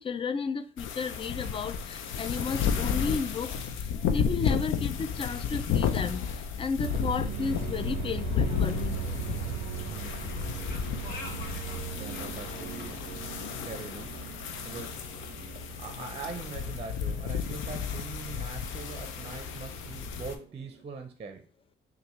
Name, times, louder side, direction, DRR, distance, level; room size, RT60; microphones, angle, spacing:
voice 1, 0.0-3.5 4.1-6.2 6.6-9.0, left 5 dB, 25° left, 0.3 m, -33 dB
sound 1, 0.8-20.3, left 7 dB, 85° left, 0.6 m, -33 dB
sound 2, 6.8-20.8, right 9 dB, 85° right, 0.4 m, -40 dB
sound 3, 7.4-13.1, left 3 dB, 55° left, 1.1 m, -45 dB
voice 2, 12.0-13.1 13.6-14.2 14.6-15.0 15.8-21.4, right 5 dB, 30° right, 0.6 m, -42 dB
5.4 x 2.6 x 3.1 m
cardioid pair, 90°, 20 cm